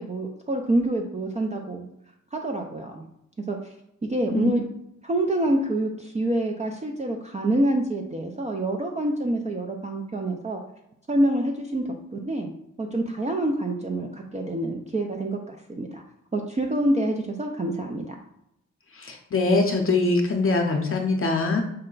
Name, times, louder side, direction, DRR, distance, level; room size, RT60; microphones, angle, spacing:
voice 1, 0.0-1.9 2.3-3.1 3.5-3.6 4.1-4.6 5.0-10.6 11.1-11.8 12.1-12.5 12.8-16.0 16.3-18.1, right 1 dB, 25° right, 2 dB, 0.4 m, -26 dB
voice 2, 19.0-21.6, left 3 dB, 45° left, 2 dB, 0.6 m, -23 dB
5.5 x 2.1 x 3.8 m, 0.81 s
cardioid pair, 95°, 30 cm